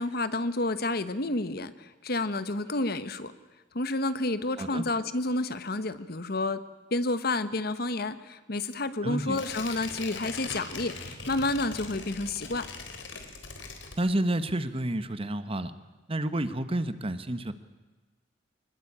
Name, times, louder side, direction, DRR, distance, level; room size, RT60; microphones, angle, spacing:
voice 1, 0.0-3.3 3.7-6.6 6.9-12.6, left 2 dB, 55° left, 13 dB, 1.3 m, -30 dB
voice 2, 9.0-9.4 14.0-15.7 16.1-17.5, right 1 dB, 30° right, 12 dB, 1.3 m, -30 dB
Tearing, 9.3-14.4 14.8-14.9, left 4 dB, 90° left, 3.8 m, -41 dB
25.5 x 20.5 x 8.7 m, 1.2 s
head